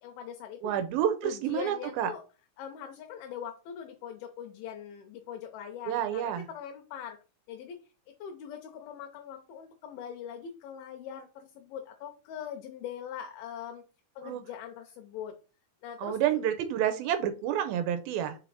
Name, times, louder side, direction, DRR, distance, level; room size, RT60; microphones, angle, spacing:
voice 1, 0.0-0.8 1.2-2.2 2.6-7.2 7.5-7.8 8.1-13.8 14.2-15.4 15.8-16.4, left 8 dB, 80° left, 4 dB, 2.6 m, -42 dB
voice 2, 0.6-2.1 5.9-6.5 14.2-14.4 16.0-18.4, right 10 dB, 80° right, 9 dB, 2.4 m, -29 dB
5.6 x 4.6 x 4.0 m, 0.34 s
omnidirectional pair, 4.5 m